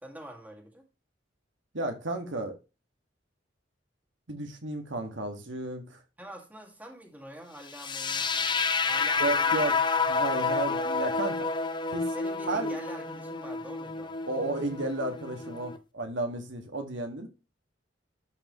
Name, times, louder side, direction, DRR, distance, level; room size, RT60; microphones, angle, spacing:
voice 1, 0.0-0.8 6.2-8.3 8.8-10.1 10.6-10.9 12.1-14.2, right 1 dB, 10° right, 2.3 m, -45 dB
voice 2, 1.7-2.6 4.3-6.0 9.2-9.8 10.1-11.5 11.9-12.1 12.5-12.8 14.3-17.3, right 2 dB, 80° right, 2.0 m, -33 dB
sound 1, 7.7-15.8, left 4 dB, 25° left, 0.7 m, -29 dB
12.0 x 4.8 x 3.2 m
head